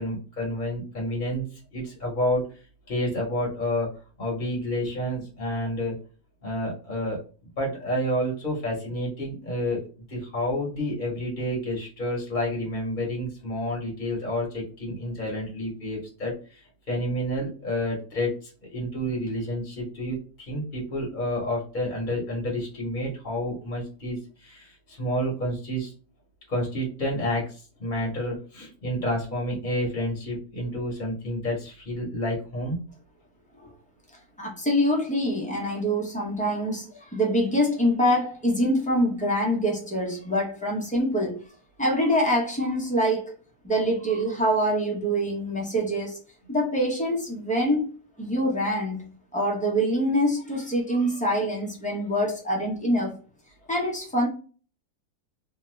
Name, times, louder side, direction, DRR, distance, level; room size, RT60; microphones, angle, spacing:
voice 1, 0.0-2.4 2.9-3.9 4.2-6.0 6.4-7.2 7.6-25.9 26.5-32.8, equal, 40° left, 0.9 m, -29 dB
voice 2, 34.4-41.4 41.8-43.4 43.6-46.2 46.5-53.2 53.7-54.3, equal, 10° left, 0.4 m, -25 dB
2.8 x 2.3 x 3.1 m
omnidirectional pair, 1.6 m